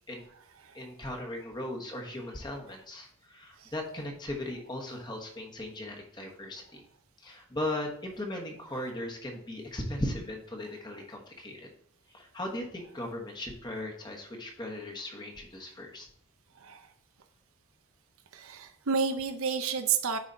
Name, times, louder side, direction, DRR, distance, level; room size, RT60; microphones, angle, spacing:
voice 1, 0.7-6.8 7.2-11.7 12.1-16.1, left 1 dB, 20° left, 1 dB, 1.2 m, -38 dB
voice 2, 16.5-16.9 18.3-20.2, right 6 dB, 65° right, 8 dB, 0.7 m, -31 dB
9.6 x 4.1 x 4.0 m, 0.66 s
head